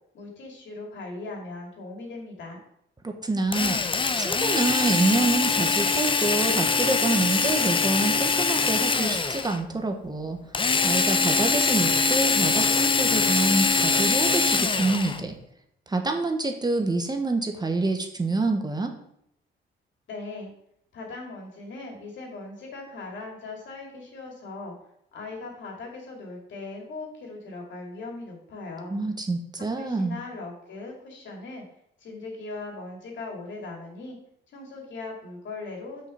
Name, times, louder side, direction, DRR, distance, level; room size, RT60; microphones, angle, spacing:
voice 1, 0.1-2.6 20.1-20.5 20.9-24.7 25.1-28.9 29.8-31.6 32.0-34.2 34.5-36.1, left 3 dB, 70° left, 0 dB, 2.8 m, -39 dB
voice 2, 3.0-3.8 4.2-10.4 10.8-15.3 15.9-18.9 28.9-30.2, right 2 dB, 20° right, 4 dB, 1.1 m, -27 dB
Drill, 3.5-9.6 10.5-15.2, left 4 dB, 25° left, 0.6 m, -23 dB
6.3 x 5.4 x 5.7 m, 0.73 s
cardioid pair, 90°, 20 cm